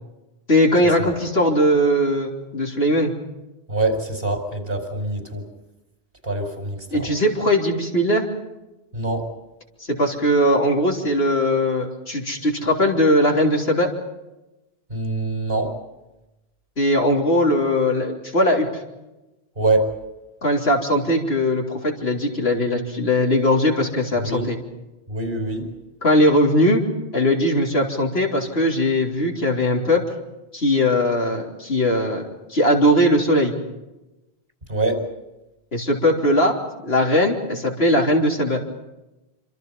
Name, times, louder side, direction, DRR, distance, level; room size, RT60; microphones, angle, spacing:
voice 1, 0.5-3.1 6.9-8.2 9.8-13.9 16.8-18.8 20.4-24.6 26.0-26.8 27.1-30.0 30.5-32.2 32.5-33.6 35.7-36.6 36.8-38.6, left 1 dB, 75° left, 0 dB, 3.8 m, -19 dB
voice 2, 3.7-5.4 6.2-7.1 8.9-9.3 14.9-15.7 19.6-19.9 24.2-24.5 25.1-25.7 34.7-35.0, right 2 dB, 60° right, 4 dB, 5.0 m, -24 dB
27.0 x 25.5 x 5.5 m, 1.0 s
omnidirectional pair, 1.1 m